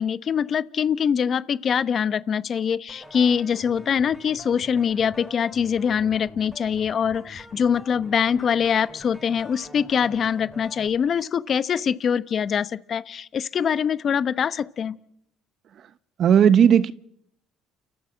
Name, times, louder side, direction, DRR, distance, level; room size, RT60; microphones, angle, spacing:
voice 1, 0.0-15.0, left 7 dB, 45° left, 0.9 m, -23 dB
sound 1, 2.9-10.9, equal, 5° right, 6.1 m, -45 dB
voice 2, 16.2-16.9, right 8 dB, 55° right, 1.0 m, -15 dB
29.5 x 14.0 x 7.6 m
supercardioid pair, 95°, 0 cm